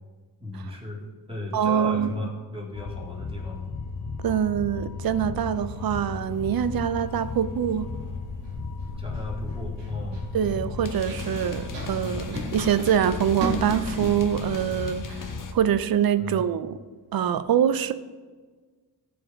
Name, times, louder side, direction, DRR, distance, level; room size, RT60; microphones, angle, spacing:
voice 1, 0.4-1.0 1.3-3.7 9.0-10.2 16.2-16.4, left 2 dB, 15° right, -3 dB, 2.0 m, -35 dB
voice 2, 1.5-2.1 4.2-7.9 10.3-16.8 17.1-17.9, right 9 dB, 60° right, 13 dB, 0.5 m, -24 dB
sound 1, 2.7-15.5, left 4 dB, 50° left, 0.8 m, -35 dB
Run, 7.7-15.7, equal, 85° right, 1.5 m, -36 dB
13.5 x 4.7 x 3.6 m, 1.4 s
wide cardioid pair, 110°, 42 cm